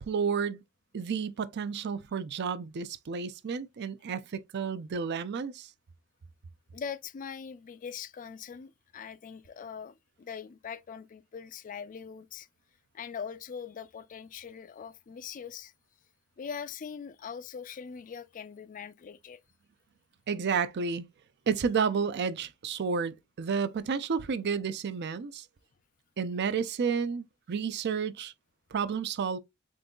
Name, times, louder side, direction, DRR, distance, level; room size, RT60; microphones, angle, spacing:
voice 1, 0.1-0.6 0.9-5.7 20.3-21.1 21.5-25.5 26.2-28.3 28.7-29.4, right 6 dB, 55° right, 0.4 m, -31 dB
voice 2, 6.7-12.5 12.9-15.7 16.4-19.4, left 7 dB, 40° left, 0.3 m, -42 dB
3.8 x 3.7 x 2.2 m
head